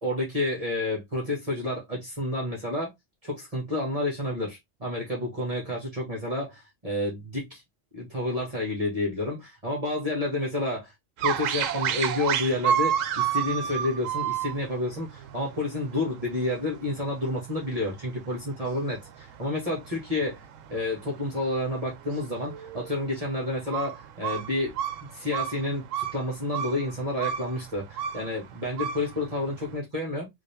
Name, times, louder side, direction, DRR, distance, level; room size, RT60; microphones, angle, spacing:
voice 1, 0.0-2.9 3.2-7.6 7.9-10.9 11.2-24.7 25.0-30.3, left 2 dB, 30° right, 1.6 m, -30 dB
sound 1, 11.2-29.8, right 9 dB, 75° right, 1.0 m, -32 dB
3.8 x 2.9 x 3.4 m
omnidirectional pair, 1.3 m